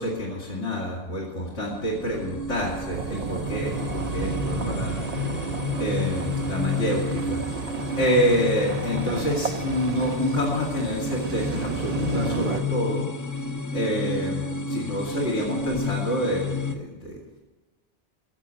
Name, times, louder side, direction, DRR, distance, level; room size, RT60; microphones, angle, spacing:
voice 1, 0.0-5.3 5.8-7.4 8.0-13.4 13.7-17.2, equal, 80° left, -3 dB, 2.9 m, -27 dB
sound 1, 1.5-16.8, left 3 dB, 20° left, 0.6 m, -31 dB
sound 2, 2.9-12.6, right 4 dB, 40° right, 0.6 m, -32 dB
15.0 x 7.1 x 8.4 m, 1.1 s
omnidirectional pair, 1.2 m